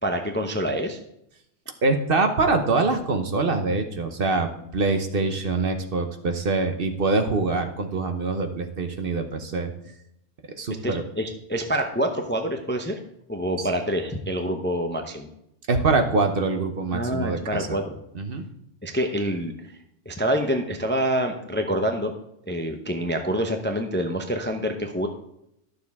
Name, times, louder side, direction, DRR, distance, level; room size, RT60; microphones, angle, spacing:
voice 1, 0.0-1.0 10.8-13.0 13.3-15.3 16.9-17.9 18.8-19.5 20.1-22.1 22.5-25.1, equal, 10° left, 5 dB, 0.5 m, -26 dB
voice 2, 1.8-9.7 10.5-11.0 13.6-13.7 15.7-17.8 18.1-18.4, right 3 dB, 50° right, 6 dB, 1.0 m, -24 dB
12.0 x 6.7 x 3.5 m, 0.78 s
omnidirectional pair, 1.3 m